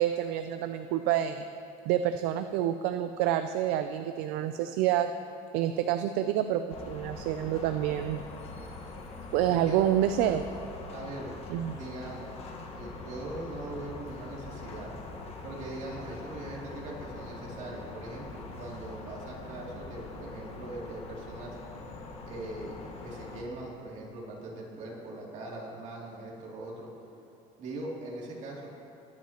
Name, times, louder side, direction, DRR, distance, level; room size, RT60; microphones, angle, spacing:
voice 1, 0.0-1.5 1.9-5.1 5.5-8.2 9.3-10.5 11.5-11.8, right 11 dB, 65° right, 8 dB, 0.5 m, -28 dB
sound 1, 6.7-23.4, left 3 dB, 35° left, 1.4 m, -43 dB
voice 2, 9.5-9.8 10.9-11.3 11.6-14.9 15.4-21.6 22.3-26.9 27.6-28.7, right 2 dB, 45° right, -3 dB, 2.8 m, -41 dB
21.5 x 10.5 x 3.0 m, 2.8 s
cardioid pair, 155°, 17 cm